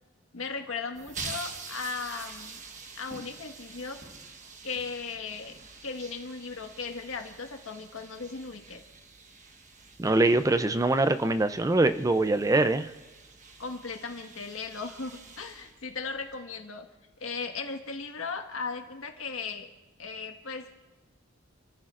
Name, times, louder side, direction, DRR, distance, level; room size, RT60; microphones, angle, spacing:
voice 1, 0.3-2.6 3.0-4.0 4.6-8.8 13.6-16.8 17.2-19.7 20.0-20.7, left 4 dB, 85° left, 4 dB, 1.6 m, -37 dB
sound 1, 0.9-16.3, right 4 dB, 40° right, 1.2 m, -46 dB
voice 2, 10.0-12.9, right 2 dB, 15° right, 11 dB, 0.4 m, -23 dB
29.5 x 14.0 x 2.5 m, 1.2 s
head